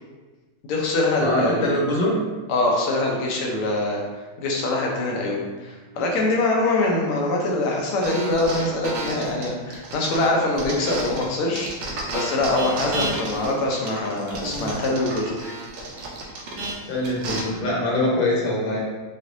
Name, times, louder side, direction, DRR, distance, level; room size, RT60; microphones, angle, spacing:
voice 1, 0.6-1.7 2.5-4.0 4.4-15.5, left 2 dB, 85° left, -1 dB, 1.7 m, -24 dB
voice 2, 1.2-2.2 16.9-18.8, left 1 dB, 65° left, -4 dB, 1.7 m, -23 dB
sound 1, 8.0-11.3 11.6-17.4, right 2 dB, 65° right, 1.3 m, -31 dB
6.0 x 2.6 x 2.6 m, 1.3 s
omnidirectional pair, 2.3 m